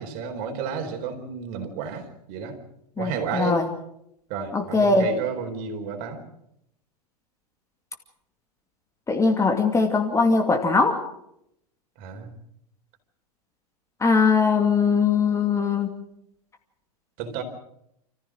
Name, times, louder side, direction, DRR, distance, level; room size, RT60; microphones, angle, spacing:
voice 1, 0.0-2.6 3.0-3.7 4.3-6.2 12.0-12.3 17.2-17.4, right 6 dB, 45° right, 5 dB, 4.3 m, -31 dB
voice 2, 3.0-3.6 4.5-5.1 9.1-11.0 14.0-15.9, left 4 dB, 15° left, 5 dB, 2.5 m, -21 dB
29.0 x 15.0 x 6.3 m, 0.77 s
hypercardioid pair, 110°, 20 cm